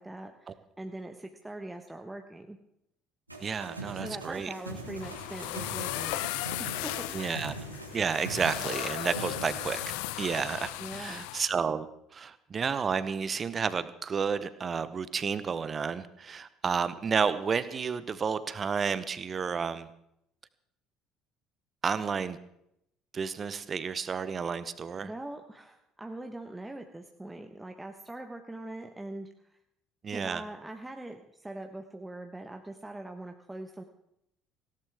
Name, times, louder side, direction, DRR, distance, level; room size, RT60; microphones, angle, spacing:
voice 1, 0.0-2.6 3.9-6.3 6.6-7.4 10.8-11.2 25.0-29.6 30.1-33.8, right 1 dB, 10° right, 4 dB, 1.2 m, -42 dB
sound 1, 3.3-9.9, right 2 dB, 90° right, 1.8 m, -42 dB
voice 2, 3.4-4.5 7.1-7.6 7.9-11.9 12.1-19.9 21.8-22.4 23.1-25.1 30.0-30.4, right 6 dB, 30° right, 14 dB, 1.0 m, -31 dB
sound 2, 4.7-11.5, left 19 dB, 65° left, 0.4 m, -36 dB
18.5 x 17.0 x 3.6 m, 0.78 s
figure-of-eight pair, 60°, 0 cm